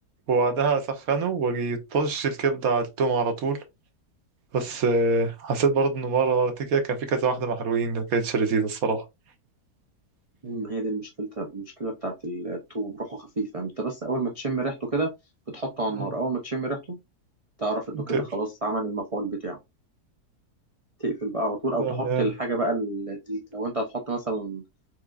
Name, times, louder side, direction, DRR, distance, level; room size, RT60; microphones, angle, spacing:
voice 1, 0.3-3.6 4.5-9.0 15.9-16.1 17.9-18.2 21.8-22.3, right 4 dB, 60° right, 1.4 m, -25 dB
voice 2, 10.4-15.1 15.5-17.0 17.6-19.6 21.0-24.6, right 2 dB, 40° right, 0.5 m, -29 dB
4.8 x 3.6 x 2.5 m
omnidirectional pair, 1.8 m